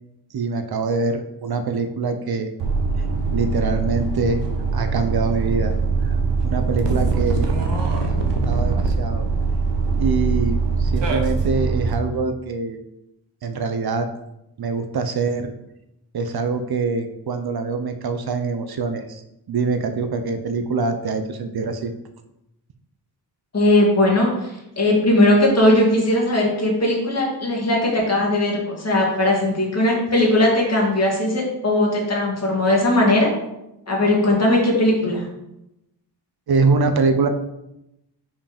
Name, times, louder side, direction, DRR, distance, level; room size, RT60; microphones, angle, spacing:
voice 1, 0.3-2.5 3.3-4.4 4.7-5.7 6.0-6.2 6.4-7.5 7.9-9.2 10.0-12.8 13.4-14.1 14.6-15.5 16.1-19.2 19.5-21.9 36.5-37.3, right 4 dB, 60° right, 8 dB, 0.7 m, -24 dB
sound 1, 2.6-11.9, right 4 dB, 80° right, 1.1 m, -22 dB
voice 2, 23.5-33.3 33.9-35.2, left 1 dB, 35° left, -2 dB, 2.2 m, -18 dB
5.5 x 5.0 x 5.1 m, 0.88 s
wide cardioid pair, 125°, 42 cm